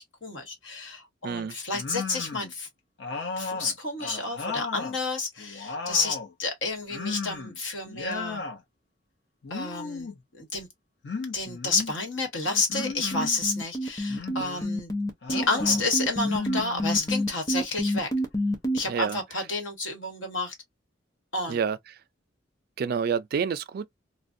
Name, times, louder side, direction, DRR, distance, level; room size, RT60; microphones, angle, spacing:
voice 1, 0.0-2.7 3.4-8.4 9.5-10.1 10.3-10.7 11.3-14.9 15.3-18.1 18.7-20.5 21.3-21.6, left 3 dB, 90° left, 1.2 m, -30 dB
voice 2, 1.2-1.5 15.8-15.9 18.9-19.2 21.5-22.0 22.8-23.9, right 6 dB, 55° right, 0.3 m, -28 dB
sound 1, 1.7-2.5 3.0-5.0 5.4-6.3 6.9-7.6 7.9-8.6 9.4-10.2 11.0-11.9 12.7-13.4 14.1-14.7 15.2-15.8 16.2-17.3, left 4 dB, 65° left, 0.7 m, -35 dB
sound 2, 12.5-18.8, equal, 20° left, 0.7 m, -28 dB
3.2 x 2.1 x 2.5 m
head